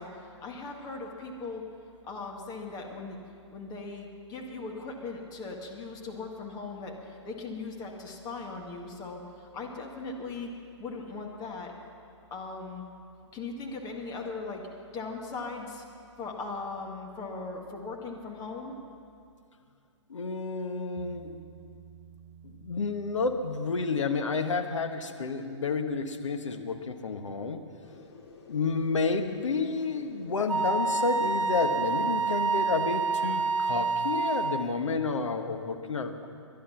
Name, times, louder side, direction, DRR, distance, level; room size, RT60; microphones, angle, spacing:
voice 1, 0.0-1.7 2.0-3.2 3.5-10.5 10.8-11.7 12.3-12.8 13.3-14.6 14.9-15.8 16.2-18.7, left 3 dB, 25° left, 1 dB, 1.8 m, -39 dB
voice 2, 20.1-21.3 22.4-27.6 28.5-36.3, left 4 dB, 75° left, 6 dB, 1.4 m, -30 dB
Bass guitar, 21.0-24.4, right 8 dB, 50° right, 1.0 m, -52 dB
sound 1, 27.8-32.9, left 4 dB, 55° left, 2.5 m, -51 dB
Wind instrument woodwind instrument, 30.5-34.7, right 4 dB, 90° right, 0.7 m, -28 dB
20.5 x 11.5 x 5.9 m, 2.4 s
figure-of-eight pair, 125°, 16 cm